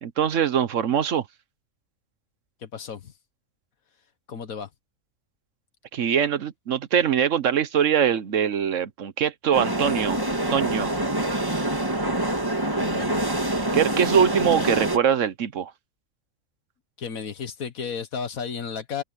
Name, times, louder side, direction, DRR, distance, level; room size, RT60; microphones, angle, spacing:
voice 1, 0.0-1.2 5.9-10.2 10.5-10.9 13.7-15.7, right 8 dB, 65° right, 1.3 m, -22 dB
voice 2, 2.6-3.1 4.3-4.7 12.6-13.2 14.6-14.8 17.0-19.0, left 6 dB, 85° left, 1.9 m, -33 dB
sound 1, 9.5-15.0, right 1 dB, 15° right, 1.9 m, -26 dB
open air
omnidirectional pair, 1.4 m